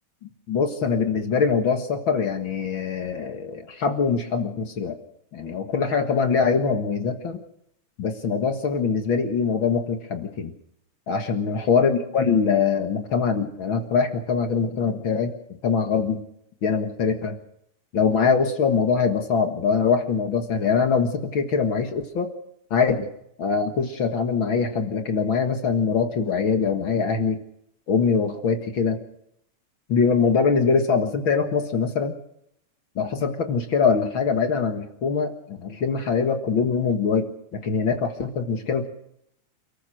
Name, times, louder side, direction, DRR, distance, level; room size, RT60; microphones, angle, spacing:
voice 1, 0.2-5.0 5.3-7.4 8.0-10.5 11.1-15.3 15.6-16.2 16.6-17.4 17.9-22.3 22.7-23.1 23.4-27.4 27.9-29.0 29.9-32.2 33.0-38.9, left 5 dB, 45° left, 6 dB, 2.1 m, -23 dB
29.0 x 14.0 x 6.4 m, 0.75 s
omnidirectional pair, 3.5 m